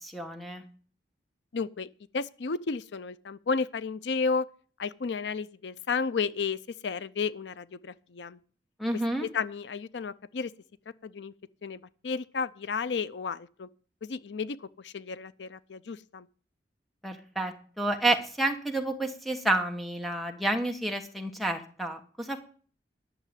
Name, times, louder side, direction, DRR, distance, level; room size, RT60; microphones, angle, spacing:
voice 1, 0.0-0.6 8.8-9.3 17.0-22.4, right 2 dB, ahead, 1.3 m, -30 dB
voice 2, 1.5-1.9 2.1-4.5 4.8-8.4 9.2-10.5 11.0-11.3 11.6-13.7 14.0-16.3, left 5 dB, 80° left, 0.5 m, -32 dB
11.0 x 6.8 x 9.1 m
head